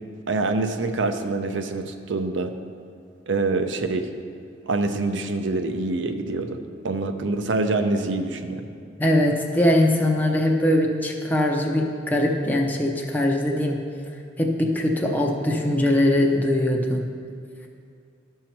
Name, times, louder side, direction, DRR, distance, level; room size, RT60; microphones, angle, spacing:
voice 1, 0.3-2.5 3.3-4.1 4.7-6.6 6.8-8.6, right 3 dB, 75° right, 7 dB, 0.6 m, -25 dB
voice 2, 9.0-13.9 14.4-17.1, left 1 dB, 10° left, 0 dB, 0.6 m, -21 dB
12.5 x 5.6 x 4.5 m, 2.3 s
head